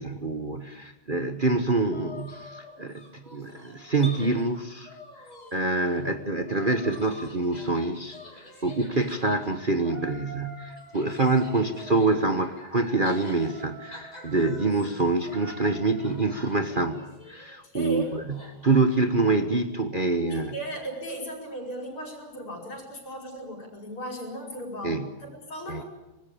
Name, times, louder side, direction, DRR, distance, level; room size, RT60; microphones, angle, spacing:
voice 1, 0.0-4.9 5.5-8.2 8.6-17.0 17.3-18.0 18.3-20.5 24.8-25.1 25.7-25.8, right 3 dB, 30° right, 7 dB, 1.0 m, -26 dB
sound 1, 1.9-4.5 4.9-6.1 6.4-17.6 18.0-19.3, equal, 20° left, 3.2 m, -46 dB
voice 2, 17.7-18.1 20.3-25.8, right 1 dB, 90° left, 2 dB, 6.0 m, -36 dB
24.5 x 20.5 x 8.5 m, 1.1 s
omnidirectional pair, 2.3 m